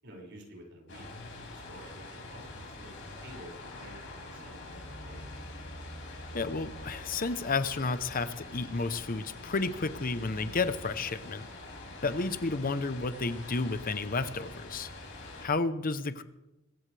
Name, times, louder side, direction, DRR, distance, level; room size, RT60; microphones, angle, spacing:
voice 1, 0.0-5.4, right 1 dB, 55° right, -1 dB, 5.8 m, -51 dB
sound 1, 0.9-15.5, left 2 dB, 60° left, 5.2 m, -45 dB
voice 2, 6.3-11.5 12.0-14.9 15.4-16.2, left 3 dB, 40° left, 12 dB, 0.8 m, -31 dB
24.5 x 15.0 x 3.4 m, 0.95 s
head